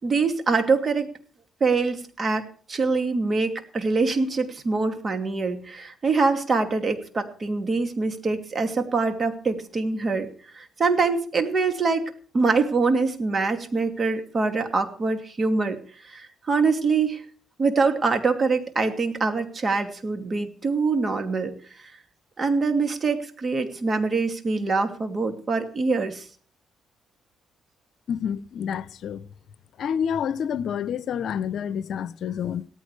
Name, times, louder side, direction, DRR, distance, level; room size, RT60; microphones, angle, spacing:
voice 1, 0.0-1.1 1.6-10.3 10.5-12.0 12.3-15.8 16.0-17.2 17.6-21.5 22.4-26.3, right 4 dB, 35° right, 2.6 m, -24 dB
voice 2, 28.1-29.2 29.8-32.7, left 8 dB, 70° left, 0.8 m, -28 dB
18.0 x 14.0 x 3.4 m
cardioid pair, 90°, 0 cm